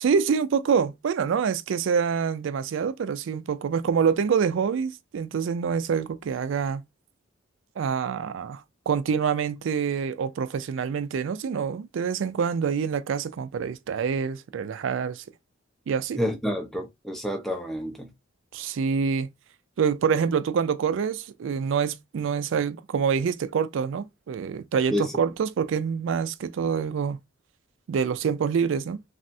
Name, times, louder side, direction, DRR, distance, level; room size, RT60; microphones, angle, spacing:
voice 1, 0.0-6.8 7.8-15.2 15.9-16.2 18.5-19.3 19.8-27.2 27.9-29.0, right 6 dB, 75° right, 0.3 m, -26 dB
voice 2, 16.2-18.1 24.9-25.1, equal, ahead, 0.5 m, -29 dB
3.4 x 2.0 x 2.6 m
head